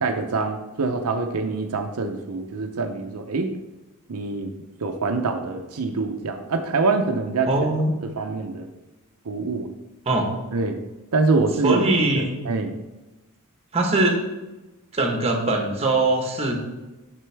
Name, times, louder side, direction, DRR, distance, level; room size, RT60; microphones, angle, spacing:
voice 1, 0.0-3.5 4.1-4.5 4.8-7.5 8.2-8.7 9.2-9.7 10.5-10.8 11.1-11.8 12.1-12.7, right 3 dB, 75° right, 4 dB, 0.6 m, -25 dB
voice 2, 7.5-7.9 10.1-10.3 11.6-12.4 13.7-14.2 14.9-16.5, right 2 dB, 30° right, 2 dB, 1.2 m, -21 dB
7.6 x 5.9 x 3.4 m, 1.1 s
head